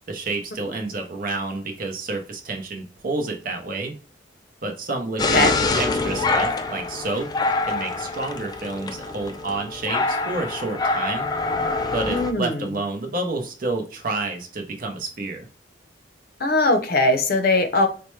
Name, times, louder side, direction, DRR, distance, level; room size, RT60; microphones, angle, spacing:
voice 1, 0.1-3.9 4.6-7.3 7.7-11.3 11.9-15.4, right 3 dB, 50° right, 4 dB, 0.7 m, -29 dB
sound 1, 5.2-12.3, left 3 dB, 20° left, 0.3 m, -25 dB
voice 2, 12.1-12.6 16.4-17.9, left 2 dB, 55° left, 7 dB, 0.6 m, -20 dB
4.1 x 2.2 x 3.1 m, 0.38 s
head